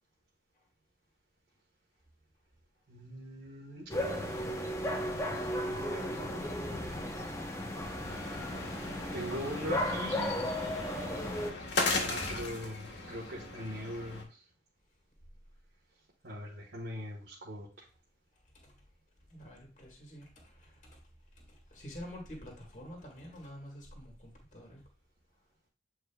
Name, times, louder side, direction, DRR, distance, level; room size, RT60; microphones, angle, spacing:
voice 1, 2.9-3.9 5.7-6.2 9.1-10.4 12.0-14.4 16.2-17.8, equal, 80° right, -5 dB, 1.5 m, -41 dB
sound 1, 3.9-11.5, left 1 dB, 15° left, 0.8 m, -35 dB
sound 2, 8.0-14.2, left 3 dB, 85° left, 1.5 m, -37 dB
voice 2, 19.3-20.7 21.7-24.8, equal, 40° left, 0 dB, 1.8 m, -47 dB
8.5 x 4.8 x 2.3 m, 0.34 s
head